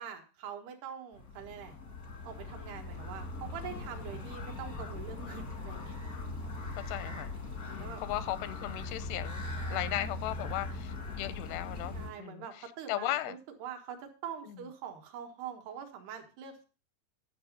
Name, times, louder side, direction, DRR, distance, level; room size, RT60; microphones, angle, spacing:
voice 1, 0.0-1.8 2.2-6.0 7.7-8.0 9.6-10.0 11.9-16.7, right 8 dB, 75° right, 4 dB, 3.5 m, -44 dB
sound 1, 1.1-12.1, left 2 dB, 65° left, 0.8 m, -40 dB
voice 2, 6.8-7.3 7.7-12.5 12.9-13.4 14.5-14.6, left 15 dB, 85° left, 15 dB, 2.7 m, -37 dB
11.5 x 6.1 x 5.3 m, 0.35 s
omnidirectional pair, 4.7 m